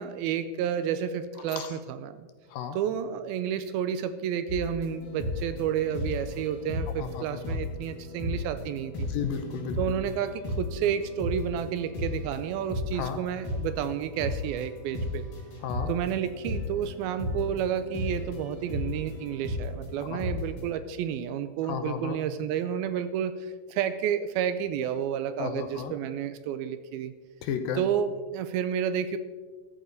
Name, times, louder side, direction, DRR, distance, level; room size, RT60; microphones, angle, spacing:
voice 1, 0.0-2.3 2.7-9.1 9.8-15.3 15.9-27.1 27.7-29.2, right 8 dB, 80° right, 12 dB, 2.3 m, -30 dB
sound 1, 4.5-20.7, left 1 dB, 60° left, 5.7 m, -35 dB
voice 2, 7.0-7.6 9.1-9.8 13.0-13.2 15.6-15.9 20.0-20.2 21.7-22.2 25.4-25.9 27.4-27.8, left 8 dB, 75° left, 8 dB, 2.4 m, -33 dB
14.0 x 14.0 x 4.0 m, 1.4 s
omnidirectional pair, 4.6 m